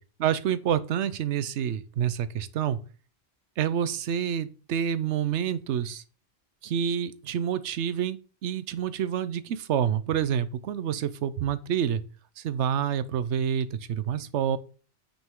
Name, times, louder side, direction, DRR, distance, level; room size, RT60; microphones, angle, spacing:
voice 1, 0.2-2.8 3.6-6.0 6.6-12.0 12.4-14.6, right 9 dB, 85° right, 0.9 m, -28 dB
8.8 x 5.4 x 3.7 m
omnidirectional pair, 1.2 m